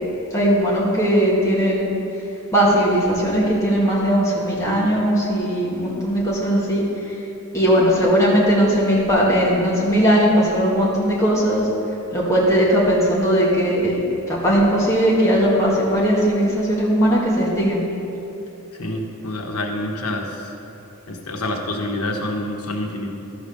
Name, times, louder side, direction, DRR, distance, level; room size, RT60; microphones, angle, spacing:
voice 1, 0.3-1.9 2.5-7.2 7.5-11.7 12.1-14.0 14.3-17.8, equal, 15° left, -7 dB, 2.1 m, -18 dB
voice 2, 18.7-20.5 21.1-23.1, left 1 dB, 85° left, 2 dB, 1.2 m, -27 dB
13.5 x 5.1 x 6.6 m, 2.9 s
head